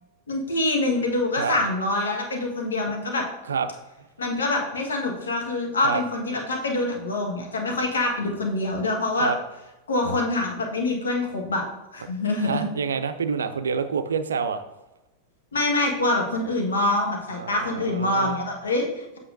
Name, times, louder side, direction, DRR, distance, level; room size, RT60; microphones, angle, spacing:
voice 1, 0.3-3.2 4.2-9.3 9.9-11.6 11.9-12.6 15.5-19.2, left 2 dB, 70° left, 1 dB, 1.3 m, -25 dB
voice 2, 12.4-14.6 17.3-18.4, right 6 dB, 70° right, 10 dB, 0.4 m, -27 dB
7.8 x 5.7 x 2.6 m, 1.0 s
figure-of-eight pair, 90°, 0 cm